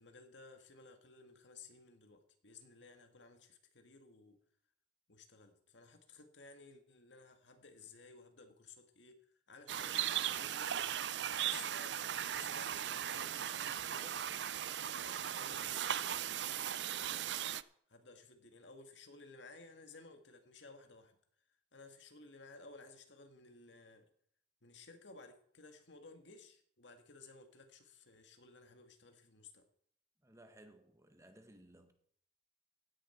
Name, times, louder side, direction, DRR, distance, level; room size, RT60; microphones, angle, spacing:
voice 1, 0.0-4.4 5.1-10.8 11.4-14.2 14.7-17.3 17.9-21.2 21.7-24.1 24.6-29.7, left 3 dB, 90° left, 1.9 m, -57 dB
sound 1, 9.7-17.6, right 10 dB, 75° right, 0.5 m, -38 dB
voice 2, 30.2-31.9, right 1 dB, 15° right, 1.4 m, -60 dB
16.0 x 10.5 x 4.5 m
head